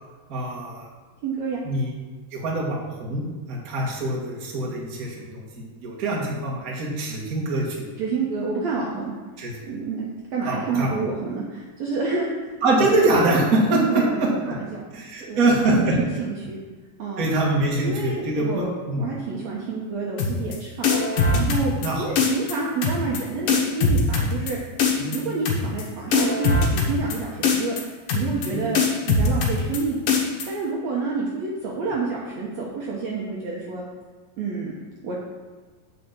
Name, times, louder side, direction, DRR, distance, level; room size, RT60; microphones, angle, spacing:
voice 1, 0.3-0.9 1.6-1.9 2.3-7.8 9.4-9.5 10.4-11.0 12.6-14.5 14.9-15.9 17.2-19.0 21.8-22.1 25.0-25.2 28.5-28.6, right 2 dB, 35° right, -3 dB, 1.4 m, -24 dB
voice 2, 1.2-1.6 8.0-9.1 9.7-10.1 10.3-12.5 13.7-14.8 15.3-16.6 17.0-17.3 17.8-18.7 19.0-21.7 22.0-24.6 25.1-28.8 29.1-30.0 30.5-33.8 34.4-34.7 35.0-35.2, right 4 dB, 65° right, -3 dB, 1.9 m, -28 dB
sound 1, 20.2-20.6 20.8-21.9 22.2-22.5 22.8-23.2 23.5-24.5 24.8-25.2 25.5-25.8 26.1-27.2 27.4-27.8 28.1-28.5 28.8-29.8 30.1-30.5, left 4 dB, 80° left, 2.9 m, -21 dB
8.0 x 5.0 x 7.4 m, 1.3 s
omnidirectional pair, 4.0 m